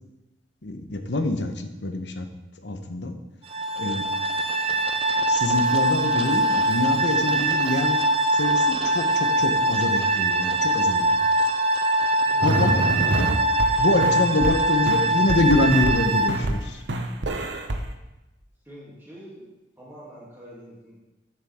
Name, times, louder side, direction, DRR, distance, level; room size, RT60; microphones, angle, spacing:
voice 1, 0.6-2.2 2.6-3.1 3.8-4.0 5.3-8.0 8.3-11.1 12.4-12.8 13.1-13.3 13.8-16.8, left 2 dB, 80° left, 6 dB, 1.1 m, -25 dB
sound 1, 3.5-16.3, right 1 dB, 30° right, 0.6 m, -22 dB
voice 2, 12.2-12.8 18.6-19.5 19.8-21.0, equal, 15° right, -7 dB, 3.0 m, -45 dB
sound 2, 12.4-13.7 14.0-14.6 14.9-16.0 16.3-16.6 16.9-17.8, right 1 dB, 80° right, 0.9 m, -26 dB
12.5 x 7.4 x 3.7 m, 1.0 s
head